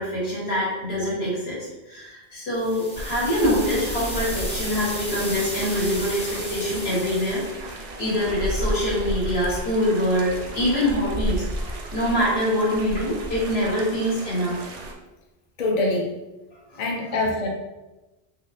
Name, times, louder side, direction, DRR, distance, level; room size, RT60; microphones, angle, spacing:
voice 1, 0.0-14.7 16.7-16.8 17.1-17.2, equal, 80° left, -7 dB, 1.6 m, -25 dB
sound 1, 2.5-7.6, equal, 5° left, 0.6 m, -34 dB
sound 2, 2.9-14.9, right 1 dB, 50° right, 0.6 m, -33 dB
voice 2, 15.6-16.1 16.8-17.5, left 2 dB, 50° left, -1 dB, 0.6 m, -24 dB
3.8 x 3.0 x 2.6 m, 1.0 s
omnidirectional pair, 1.0 m